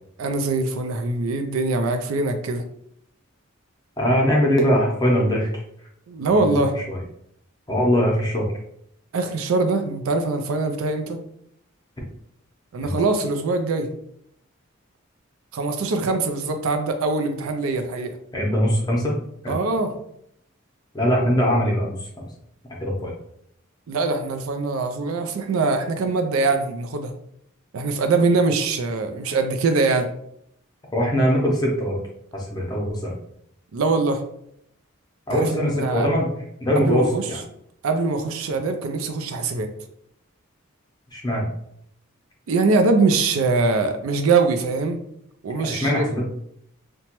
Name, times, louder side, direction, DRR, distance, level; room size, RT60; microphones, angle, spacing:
voice 1, 0.2-2.6 6.1-6.8 9.1-11.2 12.7-13.9 15.5-18.2 19.5-19.9 23.9-27.1 27.7-30.1 33.7-34.2 35.3-36.1 36.8-37.3 37.8-39.7 42.5-45.0 45.4-46.0, right 3 dB, 80° right, 6 dB, 0.4 m, -23 dB
voice 2, 4.0-5.6 6.3-7.0 7.7-8.5 12.8-12.9 18.3-19.2 19.4-19.6 20.9-22.3 22.8-23.1 30.9-32.0 32.3-33.1 35.3-36.3 36.6-37.4 41.1-41.5 45.6-46.2, equal, 20° left, -2 dB, 0.6 m, -22 dB
2.9 x 2.2 x 2.9 m, 0.71 s
head